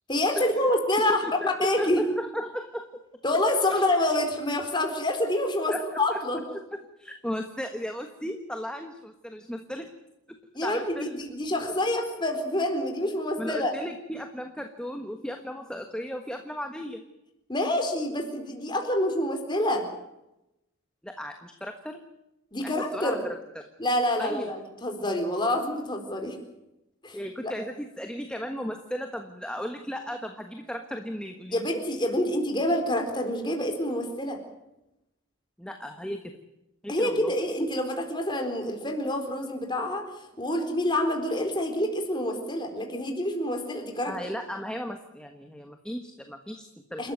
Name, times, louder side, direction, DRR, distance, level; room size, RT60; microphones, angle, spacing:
voice 1, 0.1-1.2 1.6-2.0 3.2-6.4 10.5-13.7 17.5-19.8 22.5-23.2 23.8-26.4 27.0-27.2 27.4-27.5 31.5-34.4 36.9-40.0 40.4-44.1 47.0-47.1, left 1 dB, 20° left, 3 dB, 4.1 m, -27 dB
voice 2, 1.1-2.8 3.7-3.8 5.7-6.2 6.5-9.9 10.3-11.2 13.4-17.0 21.0-22.0 22.6-23.7 24.2-24.5 27.1-31.6 35.6-36.3 36.8-37.3 44.1-47.1, equal, 5° left, 5 dB, 1.4 m, -35 dB
29.0 x 13.5 x 9.3 m, 0.90 s
head